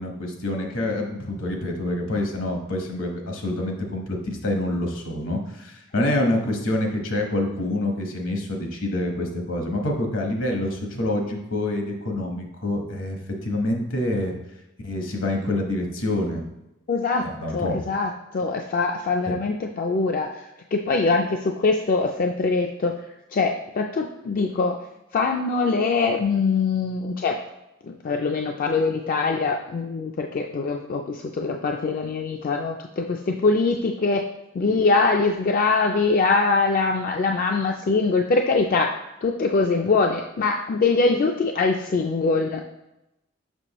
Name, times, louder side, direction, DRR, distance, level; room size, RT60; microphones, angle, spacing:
voice 1, 0.0-14.3 14.8-16.4 17.2-17.8 19.3-19.4, left 1 dB, 75° left, 2 dB, 1.1 m, -26 dB
voice 2, 16.9-17.3 17.5-20.4 20.7-23.0 23.3-24.8 25.1-27.4 27.9-34.2 34.5-42.6, left 3 dB, 45° left, 3 dB, 0.3 m, -23 dB
6.1 x 5.8 x 3.0 m, 0.92 s
head